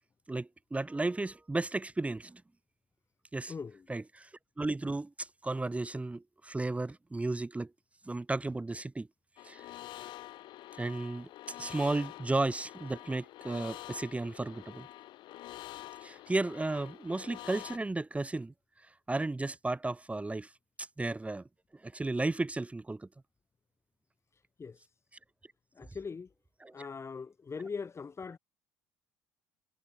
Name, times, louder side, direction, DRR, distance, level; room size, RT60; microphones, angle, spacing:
voice 1, 0.3-2.4 3.3-3.5 3.9-4.3 4.6-7.7 8.0-9.1 9.4-9.7 10.8-14.9 16.0-18.5 19.1-20.5 20.8-21.4 21.7-23.1 26.6-26.9, right 2 dB, 15° right, 1.6 m, -34 dB
voice 2, 3.5-3.8 24.6-24.9 25.8-26.3 26.7-28.4, left 5 dB, 30° left, 6.1 m, -41 dB
sound 1, 9.4-17.8, left 15 dB, 65° left, 2.2 m, -47 dB
hypercardioid pair, 65°, 9 cm